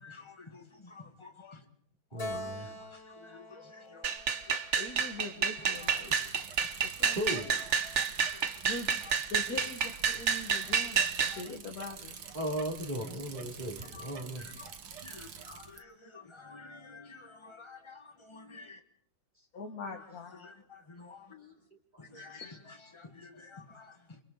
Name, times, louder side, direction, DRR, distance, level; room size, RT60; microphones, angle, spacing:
voice 1, 0.0-1.7 2.1-4.1 4.5-4.6 5.6-6.2 7.3-8.5 9.0-9.1 10.5-10.6 11.3-11.4 13.8-18.8 19.9-21.4 22.0-24.2, left 4 dB, 15° left, 1.8 m, -52 dB
voice 2, 2.1-2.7 7.2-7.4 12.3-14.4 21.9-22.0, right 1 dB, 25° right, 3.0 m, -36 dB
Keyboard (musical), 2.2-5.6, left 2 dB, 35° left, 2.8 m, -44 dB
sound 1, 4.0-11.4, right 6 dB, 45° right, 1.2 m, -30 dB
voice 3, 4.8-6.2 6.8-7.2 8.6-8.9 9.3-12.2 19.5-20.6 21.3-21.5 22.0-22.6, left 2 dB, 55° left, 2.1 m, -43 dB
Bicycle, 5.7-15.8, right 7 dB, 75° right, 1.9 m, -47 dB
29.0 x 24.5 x 4.0 m
omnidirectional pair, 1.9 m